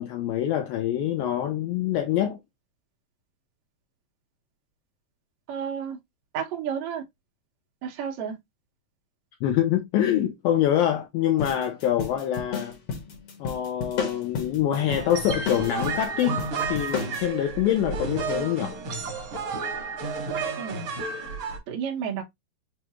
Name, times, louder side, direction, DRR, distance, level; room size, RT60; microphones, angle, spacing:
voice 1, 0.0-2.4 9.4-12.8 13.4-16.4 16.7-18.8, left 11 dB, 80° left, 2.1 m, -25 dB
voice 2, 5.5-6.0 6.3-7.0 7.8-8.4 20.6-20.8 21.7-22.2, right 7 dB, 85° right, 1.5 m, -31 dB
sound 1, 11.4-17.2, left 6 dB, 60° left, 1.8 m, -33 dB
sound 2, 14.9-21.6, right 4 dB, 60° right, 1.5 m, -31 dB
6.3 x 2.4 x 2.8 m
omnidirectional pair, 4.7 m